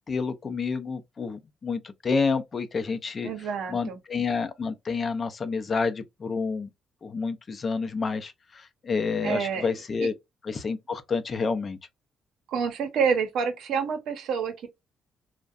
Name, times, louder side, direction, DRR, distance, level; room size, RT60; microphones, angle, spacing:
voice 1, 0.1-6.7 7.0-10.1 10.4-11.8, left 4 dB, 40° left, 0.4 m, -29 dB
voice 2, 3.2-4.0 9.2-9.7 10.0-10.1 12.5-14.7, right 6 dB, 80° right, 0.6 m, -28 dB
2.5 x 2.1 x 2.3 m
cardioid pair, 90°, 0 cm